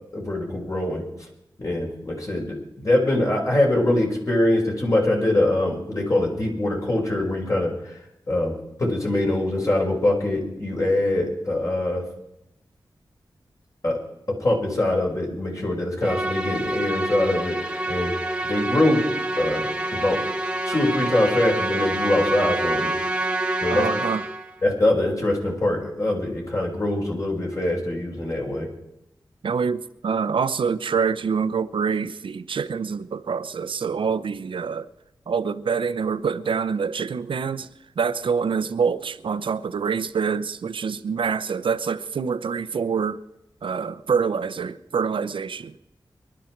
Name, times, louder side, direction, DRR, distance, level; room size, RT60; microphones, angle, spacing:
voice 1, 0.1-1.1 1.6-8.0 8.3-12.0 13.8-14.0 14.3-18.1 18.4-19.0 19.4-19.7 19.9-20.2 20.6-22.9 23.6-23.9 24.6-28.7, left 1 dB, 40° left, 5.2 m, -23 dB
Musical instrument, 16.0-24.5, right 1 dB, 10° right, 1.4 m, -27 dB
voice 2, 23.7-24.2 29.4-34.9 35.3-37.7 38.0-43.2 43.6-45.8, right 6 dB, 85° right, 0.8 m, -26 dB
24.0 x 12.0 x 4.6 m
wide cardioid pair, 85°, 9 cm